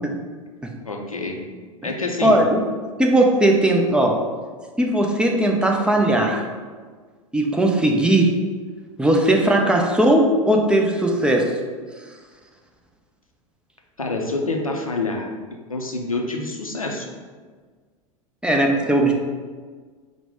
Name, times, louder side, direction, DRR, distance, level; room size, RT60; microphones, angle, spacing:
voice 1, 0.8-1.4 1.8-2.4 14.0-15.3 15.7-17.1, left 2 dB, 90° left, 1 dB, 0.5 m, -26 dB
voice 2, 2.2-2.6 3.0-4.2 4.8-6.4 7.3-8.3 9.0-11.5 18.4-19.1, right 1 dB, 5° right, 0 dB, 0.4 m, -18 dB
4.7 x 2.1 x 3.6 m, 1.5 s
figure-of-eight pair, 85°, 17 cm